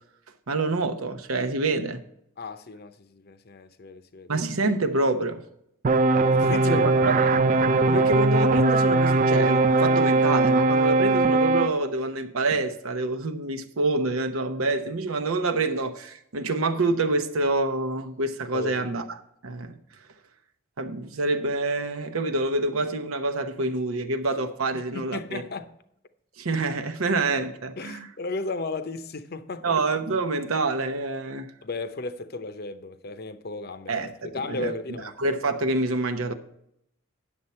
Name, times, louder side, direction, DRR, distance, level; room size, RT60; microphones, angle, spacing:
voice 1, 0.5-2.0 4.3-5.4 6.7-7.3 7.9-19.2 19.4-19.7 20.8-25.4 26.4-28.1 29.6-31.5 33.9-34.7 35.2-36.3, right 2 dB, 90° right, 0.9 m, -27 dB
voice 2, 2.4-4.3 6.3-6.9 18.5-18.9 24.9-25.7 27.8-29.8 31.6-35.1, left 3 dB, 50° left, 0.6 m, -34 dB
sound 1, 5.8-11.7, right 3 dB, 35° right, 0.4 m, -20 dB
9.6 x 7.1 x 4.2 m
head